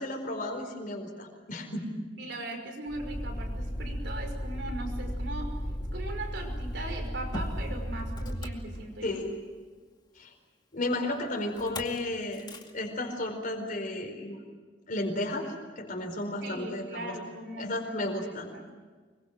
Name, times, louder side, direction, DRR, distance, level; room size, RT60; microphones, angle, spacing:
voice 1, 0.0-2.0 9.0-9.3 10.1-10.3 10.7-14.4 14.9-17.2 17.6-18.5, left 1 dB, 45° left, 2 dB, 4.6 m, -33 dB
voice 2, 2.2-5.6 5.9-9.2 16.4-18.6, right 2 dB, 70° right, 4 dB, 5.7 m, -39 dB
Motor vehicle (road), 2.9-9.3 11.6-12.0 12.3-12.7, equal, 25° left, 2.3 m, -35 dB
25.0 x 23.0 x 7.7 m, 1.5 s
head